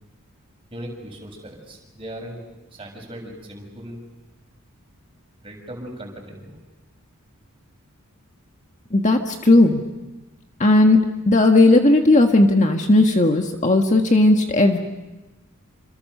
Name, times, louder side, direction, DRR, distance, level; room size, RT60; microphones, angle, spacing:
voice 1, 0.7-2.4 2.7-4.0 5.4-6.6, right 1 dB, 25° right, 1 dB, 6.8 m, -38 dB
voice 2, 8.9-9.8 10.6-11.0 11.2-14.8, left 2 dB, 35° left, 4 dB, 1.6 m, -15 dB
28.5 x 27.0 x 6.7 m, 1.1 s
head